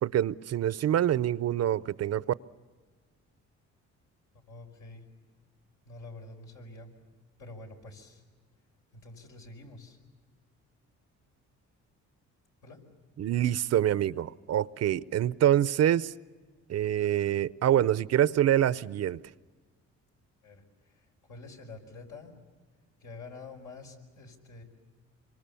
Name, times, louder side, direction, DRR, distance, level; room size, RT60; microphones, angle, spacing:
voice 1, 0.0-2.2 13.2-16.1 16.7-19.2, right 11 dB, 55° right, 0.7 m, -26 dB
voice 2, 4.5-5.1 5.8-6.9 7.4-8.2 8.9-10.0 12.6-12.8 20.4-22.3 23.0-24.6, left 3 dB, 80° left, 5.3 m, -47 dB
26.0 x 24.5 x 7.0 m
cardioid pair, 90°, 30 cm